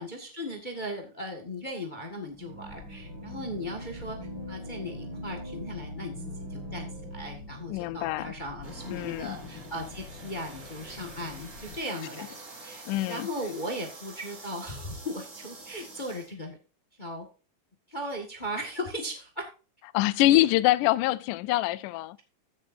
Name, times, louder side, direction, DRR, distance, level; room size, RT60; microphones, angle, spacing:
voice 1, 0.0-4.2 4.5-12.8 13.1-16.6 17.0-17.3 17.9-19.5, equal, 30° left, 0.8 m, -37 dB
sound 1, 2.4-9.5, right 1 dB, 40° right, 3.0 m, -43 dB
sound 2, 2.6-11.8, left 6 dB, 60° left, 1.6 m, -47 dB
voice 2, 7.7-8.3 8.9-9.4 12.9-13.3 19.9-22.2, left 16 dB, 80° left, 2.0 m, -25 dB
sound 3, 8.6-16.3, right 3 dB, 65° right, 6.5 m, -46 dB
15.0 x 7.2 x 2.6 m
omnidirectional pair, 3.9 m